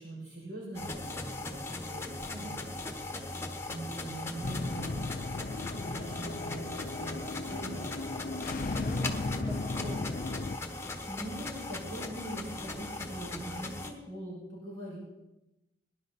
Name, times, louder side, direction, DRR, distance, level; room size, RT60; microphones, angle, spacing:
voice 1, 0.0-2.6 2.9-3.3 3.7-5.0 5.7-8.1 10.6-15.0, right 1 dB, 70° right, -4 dB, 5.7 m, -43 dB
sound 1, 0.7-13.9, left 2 dB, 15° left, 1.1 m, -39 dB
sound 2, 4.4-10.6, left 3 dB, 45° left, 0.5 m, -36 dB
voice 2, 8.7-10.2, equal, 20° right, 2 dB, 2.0 m, -44 dB
21.0 x 10.5 x 4.2 m, 0.96 s
head